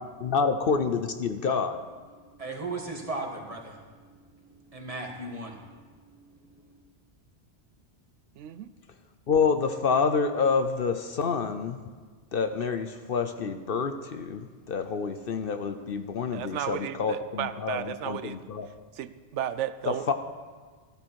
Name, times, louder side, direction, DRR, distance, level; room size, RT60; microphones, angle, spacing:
voice 1, 0.0-1.8 9.3-11.8 12.3-18.7 19.9-20.1, left 5 dB, 55° left, 8 dB, 0.8 m, -28 dB
voice 2, 2.2-6.8, right 2 dB, 30° right, 1 dB, 1.7 m, -38 dB
voice 3, 8.4-8.7 16.3-18.4 19.0-20.1, right 10 dB, 80° right, 13 dB, 0.9 m, -34 dB
14.0 x 13.0 x 4.6 m, 1.5 s
omnidirectional pair, 1.2 m